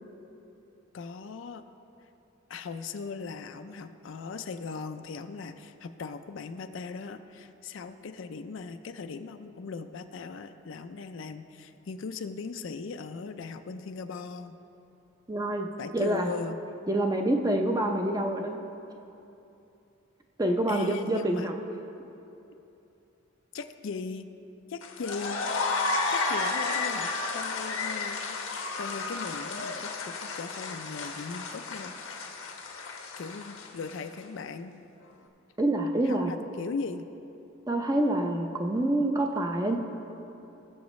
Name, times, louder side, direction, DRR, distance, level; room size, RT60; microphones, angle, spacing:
voice 1, 0.9-1.6 2.5-14.6 15.8-16.6 20.7-21.5 23.5-24.3 24.7-25.4 26.1-32.0 32.4-32.5 33.2-34.8 36.0-37.1, left 4 dB, 65° left, 8 dB, 0.4 m, -39 dB
voice 2, 15.3-15.7 15.9-16.3 16.9-18.6 20.4-21.5 35.6-36.3 37.7-39.8, right 1 dB, 15° right, 3 dB, 0.5 m, -26 dB
sound 1, 24.8-34.1, left 3 dB, 90° left, 1.1 m, -32 dB
19.0 x 7.1 x 3.1 m, 2.8 s
head